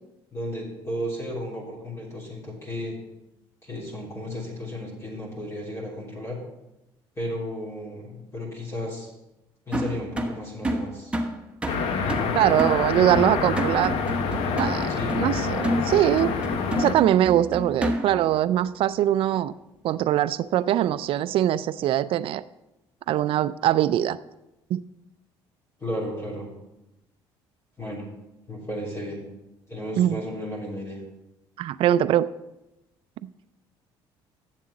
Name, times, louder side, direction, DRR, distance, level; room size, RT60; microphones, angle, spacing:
voice 1, 0.3-3.0 3.6-6.4 7.2-9.1 9.7-11.1 12.0-12.3 14.9-15.2 25.8-26.5 27.8-28.1 28.5-29.2 29.7-31.0, left 1 dB, 25° left, -4 dB, 3.3 m, -34 dB
sound 1, 9.7-18.3, right 1 dB, 10° right, 1.2 m, -30 dB
sound 2, 11.7-17.0, left 5 dB, 70° left, 1.1 m, -27 dB
voice 2, 12.4-13.9 14.5-16.3 16.8-19.5 19.8-22.4 23.1-24.2 24.7-24.8 30.0-30.2 31.6-32.3, right 12 dB, 60° right, 14 dB, 0.4 m, -22 dB
7.5 x 7.5 x 5.9 m, 0.93 s
supercardioid pair, 85°, 10 cm